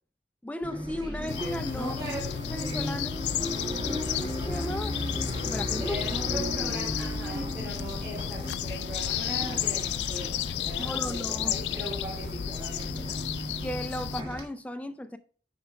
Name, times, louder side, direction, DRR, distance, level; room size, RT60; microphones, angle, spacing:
voice 1, 0.4-1.9 2.5-3.1 3.9-5.0 5.4-6.0 10.8-11.6 13.6-15.2, left 1 dB, 10° left, 0.4 m, -35 dB
Bus, 0.6-14.4, equal, 25° right, 1.6 m, -36 dB
sound 1, 1.3-14.2, left 10 dB, 75° left, 0.4 m, -33 dB
voice 2, 1.7-2.4 5.8-13.2, right 1 dB, 10° right, 2.7 m, -39 dB
10.0 x 4.7 x 3.4 m
head